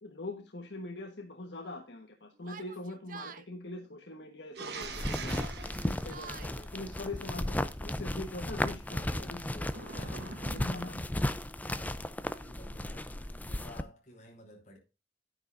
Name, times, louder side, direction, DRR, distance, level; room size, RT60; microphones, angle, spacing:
voice 1, 0.0-5.5 5.8-11.1, left 2 dB, 75° left, 1.4 m, -43 dB
Yell, 2.4-3.5 4.5-4.9 5.3-6.5, right 6 dB, 50° right, 0.6 m, -48 dB
sound 1, 4.5-7.3 9.7-11.1, right 4 dB, 65° right, 1.4 m, -44 dB
sound 2, 4.8-13.8, left 1 dB, 10° left, 0.5 m, -35 dB
voice 2, 9.8-10.5 11.6-14.8, left 1 dB, 45° left, 5.5 m, -54 dB
11.0 x 9.9 x 2.6 m
head